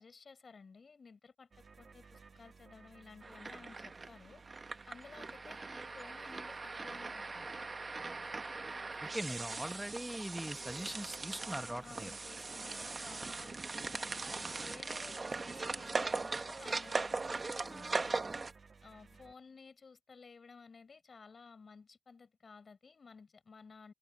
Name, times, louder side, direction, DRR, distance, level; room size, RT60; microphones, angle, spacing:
voice 1, 0.0-4.4 4.9-7.5 9.2-9.4 11.8-18.1 18.8-23.9, left 5 dB, 85° left, 5.5 m, -56 dB
sound 1, 1.5-19.3, right 4 dB, 85° right, 1.8 m, -59 dB
sound 2, 3.2-18.5, right 3 dB, 55° right, 1.1 m, -40 dB
voice 2, 9.0-12.1, right 1 dB, 10° right, 1.0 m, -41 dB
wide cardioid pair, 90°, 0 cm